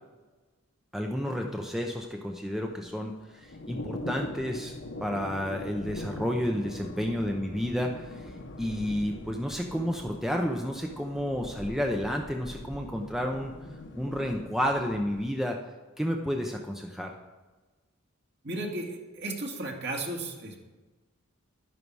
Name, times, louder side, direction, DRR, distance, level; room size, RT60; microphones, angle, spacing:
voice 1, 0.9-4.7 5.0-8.3 8.6-13.5 14.0-15.6 16.0-17.1, equal, ahead, 2 dB, 0.6 m, -31 dB
sound 1, 1.5-15.3, left 1 dB, 55° left, 1.1 m, -42 dB
voice 2, 18.4-20.7, right 2 dB, 55° right, 0 dB, 2.2 m, -35 dB
11.5 x 10.5 x 4.8 m, 1.2 s
head